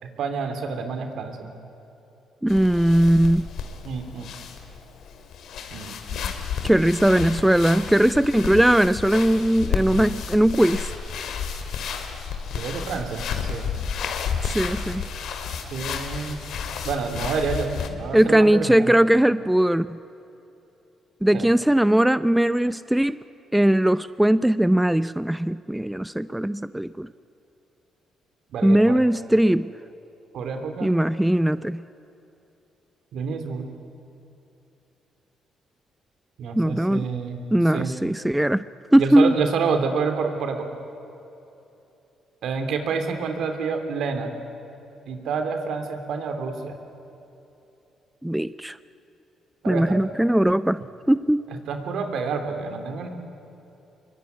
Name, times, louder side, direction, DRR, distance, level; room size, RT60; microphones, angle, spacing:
voice 1, 0.0-1.5 3.8-4.3 5.7-6.3 12.5-13.7 15.7-16.4 16.8-18.9 21.3-21.5 28.5-29.0 30.3-30.9 33.1-33.7 36.4-37.4 37.7-38.0 39.0-40.7 42.4-44.3 45.1-46.8 49.6-50.0 51.7-53.1, right 5 dB, 75° right, 6 dB, 3.1 m, -28 dB
voice 2, 2.4-3.5 6.6-10.9 14.4-15.0 18.1-20.0 21.2-23.2 23.5-27.1 28.6-29.7 30.8-31.8 36.5-37.1 37.5-38.6 38.9-39.3 48.2-48.8 49.7-51.5, right 1 dB, 5° right, 15 dB, 0.5 m, -19 dB
sound 1, 2.5-17.9, left 6 dB, 75° left, 2.6 m, -31 dB
25.0 x 23.0 x 9.7 m, 2.9 s
cardioid pair, 90°, 0 cm